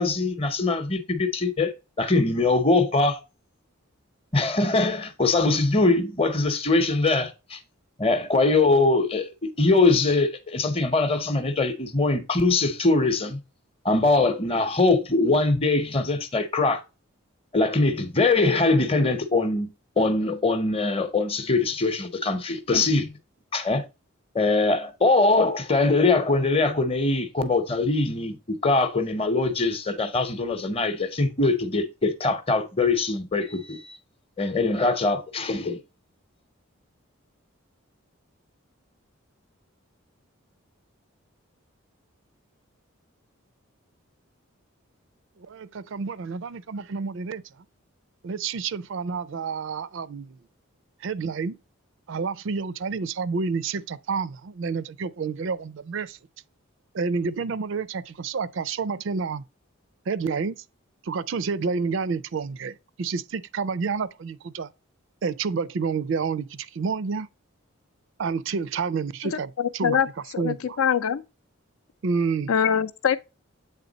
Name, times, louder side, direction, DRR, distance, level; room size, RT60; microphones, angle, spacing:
voice 1, 0.0-1.7 2.0-3.2 4.3-7.6 8.0-13.4 13.8-16.8 17.5-19.7 20.0-23.2 23.5-23.9 24.3-34.0 34.4-35.8, left 3 dB, 25° left, 0.7 m, -22 dB
voice 2, 45.4-47.4 48.2-50.4 51.0-51.6 52.1-56.2 56.9-59.4 60.1-60.6 61.0-64.7 65.2-67.3 68.2-70.0 70.4-70.8 72.0-72.5, right 5 dB, 60° right, 0.4 m, -29 dB
voice 3, 69.2-70.1 70.3-71.2 72.5-73.2, left 7 dB, 75° left, 0.5 m, -24 dB
8.1 x 3.3 x 4.0 m
head